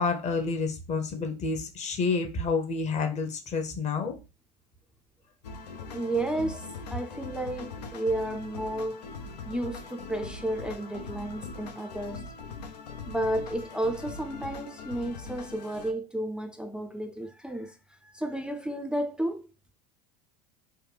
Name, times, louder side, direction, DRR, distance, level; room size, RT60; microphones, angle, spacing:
voice 1, 0.0-4.2, left 4 dB, 35° left, 0.9 m, -29 dB
sound 1, 5.4-15.9, left 4 dB, 85° left, 0.5 m, -41 dB
voice 2, 5.9-9.0 9.5-12.3 13.1-17.7 18.0-19.4, right 1 dB, 5° right, 0.4 m, -32 dB
3.3 x 2.2 x 3.3 m
hypercardioid pair, 85°, 20 cm